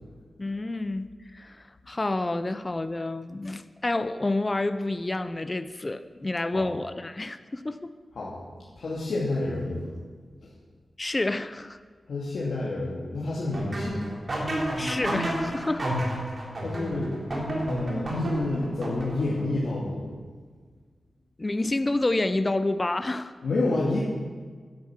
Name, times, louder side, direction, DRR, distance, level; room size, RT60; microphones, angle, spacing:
voice 1, 0.4-7.9 11.0-11.8 14.8-16.0 21.4-23.3, left 2 dB, 25° left, 12 dB, 0.6 m, -29 dB
voice 2, 8.8-9.9 10.4-10.5 12.1-14.2 16.6-17.2 17.7-20.1 23.4-24.0, left 2 dB, 75° left, -6 dB, 2.5 m, -29 dB
sound 1, 13.5-19.4, right 1 dB, 40° right, 3.6 m, -30 dB
11.0 x 10.5 x 7.5 m, 1.5 s
wide cardioid pair, 110°, 0 cm